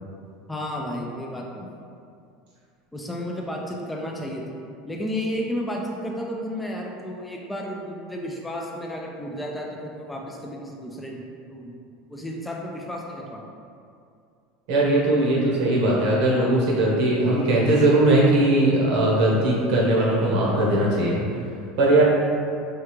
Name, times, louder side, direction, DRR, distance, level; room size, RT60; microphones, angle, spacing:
voice 1, 0.5-1.7 2.9-4.4 4.8-11.2 11.5-11.8 12.1-13.4, equal, 10° left, -1 dB, 0.4 m, -32 dB
voice 2, 14.7-21.2 21.8-22.0, right 1 dB, 70° right, -4 dB, 0.9 m, -19 dB
3.3 x 2.4 x 3.0 m, 2.4 s
supercardioid pair, 115°, 0 cm